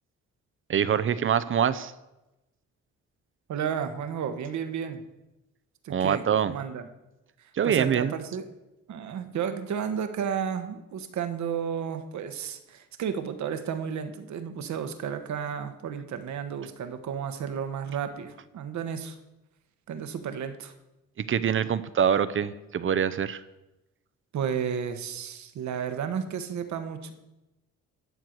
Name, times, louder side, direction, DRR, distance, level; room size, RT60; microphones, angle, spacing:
voice 1, 0.7-1.9 5.9-6.5 7.5-8.1 21.3-23.4, right 8 dB, 45° right, 13 dB, 0.7 m, -24 dB
voice 2, 3.5-5.0 5.8-6.9 7.6-8.4 8.9-19.2 19.9-20.7 24.3-27.1, right 7 dB, 70° right, 9 dB, 1.2 m, -32 dB
12.0 x 4.6 x 8.0 m, 0.97 s
cardioid pair, 90°, 30 cm